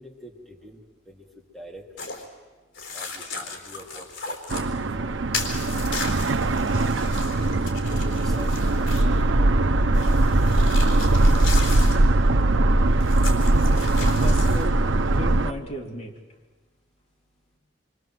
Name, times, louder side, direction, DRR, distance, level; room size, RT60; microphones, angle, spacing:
voice 1, 0.0-14.2 16.3-17.6, equal, ahead, -1 dB, 3.1 m, -48 dB
sound 1, 2.0-2.3 2.7-4.7 5.3-9.2 9.9-12.0 13.0-14.7, left 4 dB, 75° left, 4.0 m, -36 dB
sound 2, 4.5-15.5, right 2 dB, 90° right, 0.8 m, -20 dB
voice 2, 14.2-14.8 15.0-16.1, left 1 dB, 35° left, 0 dB, 3.2 m, -34 dB
27.5 x 24.5 x 7.8 m, 1.3 s
head